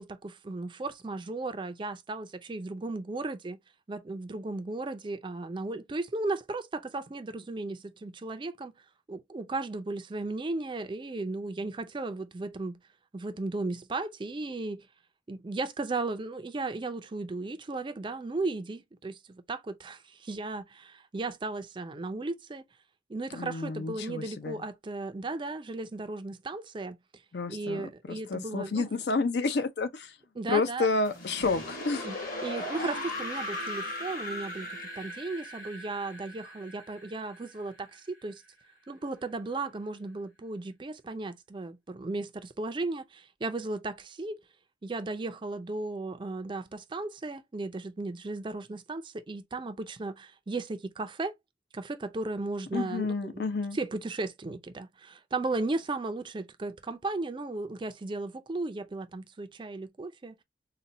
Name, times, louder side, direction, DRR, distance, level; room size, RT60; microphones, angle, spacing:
voice 1, 0.0-3.6 3.9-8.7 9.1-12.8 13.1-14.9 15.3-22.6 23.1-27.0 27.5-28.9 30.4-30.9 32.0-32.2 32.4-38.4 38.9-44.4 44.8-51.4 51.7-53.5 53.7-60.3, right 3 dB, 25° right, 0.4 m, -35 dB
voice 2, 23.3-24.6 27.3-30.1 30.5-32.1 32.8-33.0 52.7-53.8, left 3 dB, 65° left, 0.5 m, -30 dB
sound 1, 31.1-38.0, left 1 dB, 50° left, 1.3 m, -38 dB
4.1 x 2.2 x 2.6 m
head